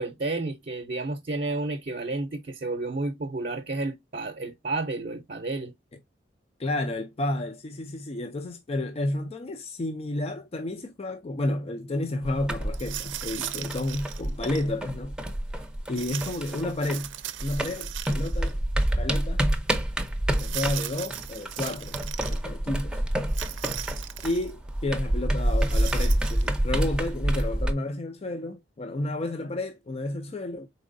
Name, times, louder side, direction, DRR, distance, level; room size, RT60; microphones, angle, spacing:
voice 1, 0.0-5.7, right 2 dB, 50° right, 0.7 m, -31 dB
voice 2, 6.6-15.2 15.9-17.1 17.4-18.6 19.0-19.4 20.4-23.0 24.2-30.7, left 1 dB, 35° left, 0.5 m, -31 dB
sound 1, 12.2-17.1 17.4-27.7, right 1 dB, 5° right, 0.6 m, -28 dB
sound 2, 12.7-14.7 16.0-18.5 18.8-18.9 20.3-22.4 23.3-24.5 25.5-26.5, right 13 dB, 90° right, 0.5 m, -38 dB
4.5 x 4.1 x 2.5 m
head